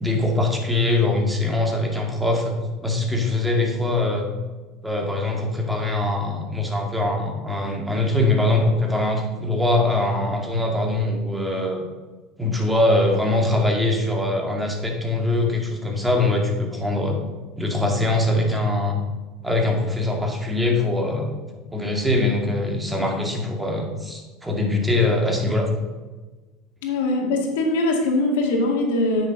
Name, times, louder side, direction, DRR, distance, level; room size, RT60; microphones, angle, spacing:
voice 1, 0.0-2.6 2.8-4.3 4.8-11.9 12.4-17.2 17.6-19.0 19.4-21.4 21.7-25.7, left 2 dB, 10° right, 1 dB, 2.2 m, -22 dB
voice 2, 26.8-29.3, left 2 dB, 85° left, 1 dB, 2.0 m, -22 dB
8.9 x 6.4 x 5.2 m, 1.3 s
supercardioid pair, 105°, 0 cm